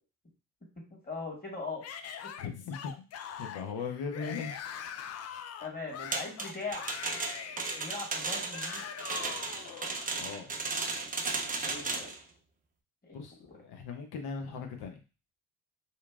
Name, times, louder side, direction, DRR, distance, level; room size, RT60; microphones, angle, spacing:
voice 1, 0.9-1.9 2.2-2.3 5.6-6.9 7.8-8.9 11.6-12.1 13.0-13.2, left 3 dB, 20° left, -2 dB, 1.6 m, -40 dB
Yell / Screaming, 1.8-10.1, left 8 dB, 35° left, 0.4 m, -43 dB
voice 2, 2.4-3.1 3.4-4.6 10.1-10.5 13.1-15.0, left 5 dB, 60° left, 4 dB, 0.8 m, -39 dB
sound 1, 6.1-12.2, right 4 dB, 20° right, 0.5 m, -35 dB
2.9 x 2.5 x 2.3 m, 0.32 s
hypercardioid pair, 50°, 44 cm